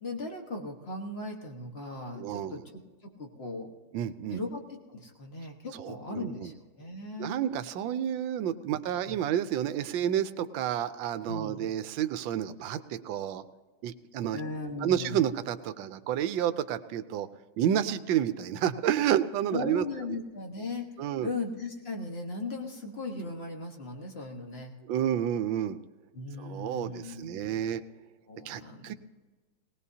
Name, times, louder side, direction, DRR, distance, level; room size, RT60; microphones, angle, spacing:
voice 1, 0.0-3.7 4.3-7.4 8.7-8.8 9.1-9.2 11.3-11.6 14.3-15.2 19.5-20.8 21.2-24.7 26.1-27.6 28.3-28.9, left 2 dB, 35° left, 2 dB, 1.4 m, -38 dB
voice 2, 2.2-2.6 3.9-4.4 5.8-6.5 7.2-13.4 13.8-14.4 14.8-17.3 17.6-19.8 21.0-21.3 24.9-25.8 26.4-27.8 28.4-28.9, right 10 dB, 70° right, 11 dB, 1.3 m, -30 dB
19.0 x 19.0 x 2.8 m, 1.3 s
omnidirectional pair, 2.3 m